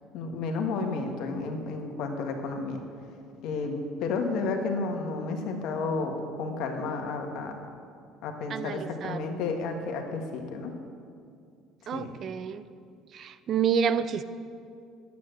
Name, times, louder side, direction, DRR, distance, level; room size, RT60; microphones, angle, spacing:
voice 1, 0.1-2.8 3.4-7.6 8.2-10.7 11.9-12.1, left 4 dB, 70° left, 4 dB, 1.6 m, -32 dB
voice 2, 8.5-9.4 11.9-12.7 13.1-14.2, right 7 dB, 50° right, 14 dB, 0.6 m, -29 dB
10.0 x 8.6 x 7.8 m, 2.4 s
supercardioid pair, 75°, 0 cm